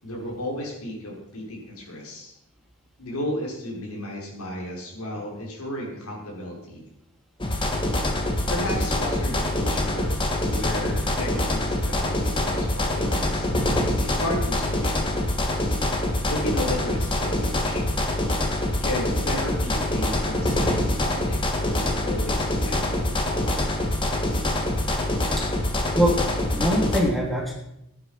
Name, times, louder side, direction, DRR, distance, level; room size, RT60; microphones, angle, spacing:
voice 1, 0.0-2.3 3.0-6.8 8.5-10.2 10.4-13.5 14.0-15.2 16.3-17.9 18.8-23.6, left 1 dB, 80° left, -1 dB, 5.7 m, -33 dB
sound 1, 7.4-27.0, left 1 dB, 25° left, 2.2 m, -25 dB
voice 2, 26.5-27.5, equal, ahead, -3 dB, 3.4 m, -22 dB
18.0 x 10.0 x 6.0 m, 0.84 s
head